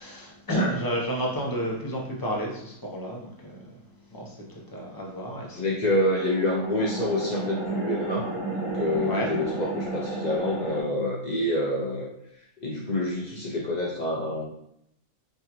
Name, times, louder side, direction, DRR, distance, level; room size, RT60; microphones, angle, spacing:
voice 1, 0.0-3.8 4.0-6.0 9.1-9.3, equal, 20° left, -2 dB, 0.7 m, -31 dB
voice 2, 5.5-14.5, left 1 dB, 70° left, -3 dB, 0.4 m, -27 dB
sound 1, 6.1-10.8, right 2 dB, 65° right, 1.5 m, -32 dB
5.3 x 2.4 x 2.9 m, 0.78 s
omnidirectional pair, 1.4 m